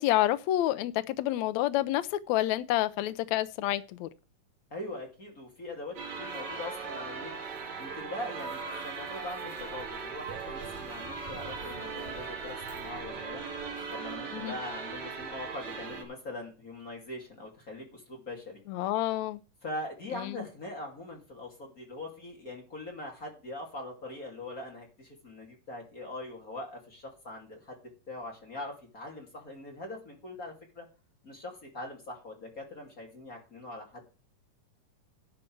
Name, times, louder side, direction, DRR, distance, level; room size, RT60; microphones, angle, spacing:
voice 1, 0.0-4.1 14.3-14.5 18.7-19.4 20.2-20.3, left 14 dB, 75° left, 1.8 m, -28 dB
voice 2, 4.7-7.3 7.8-13.4 13.9-19.0 19.6-27.8 28.1-30.9 31.2-34.1, left 2 dB, 30° left, 2.7 m, -42 dB
sound 1, 6.0-16.0, right 5 dB, 60° right, 3.4 m, -39 dB
11.5 x 8.4 x 4.6 m
omnidirectional pair, 3.7 m